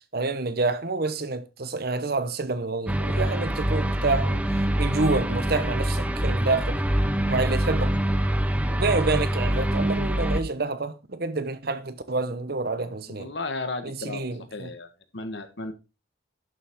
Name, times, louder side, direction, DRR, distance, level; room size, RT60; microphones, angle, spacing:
voice 1, 0.1-4.5 4.8-6.8 7.3-8.0 8.7-13.3 13.8-14.7, right 3 dB, 55° right, 1.0 m, -28 dB
sound 1, 2.9-10.4, right 1 dB, 5° right, 0.8 m, -25 dB
voice 2, 13.1-14.9 15.1-15.7, left 2 dB, 65° left, 1.5 m, -34 dB
11.0 x 7.2 x 3.7 m
head